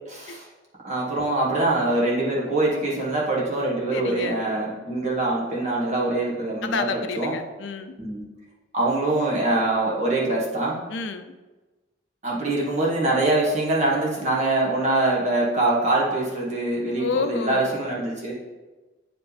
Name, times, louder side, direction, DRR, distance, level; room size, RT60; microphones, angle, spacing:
voice 1, 0.1-0.5 0.8-7.3 8.0-8.2 8.7-10.8 12.2-18.3, right 2 dB, 40° right, -4 dB, 1.6 m, -24 dB
voice 2, 3.9-4.4 6.6-7.9 10.9-11.3 17.0-17.7, left 5 dB, 70° left, 8 dB, 0.5 m, -29 dB
8.5 x 4.9 x 3.4 m, 1.2 s
head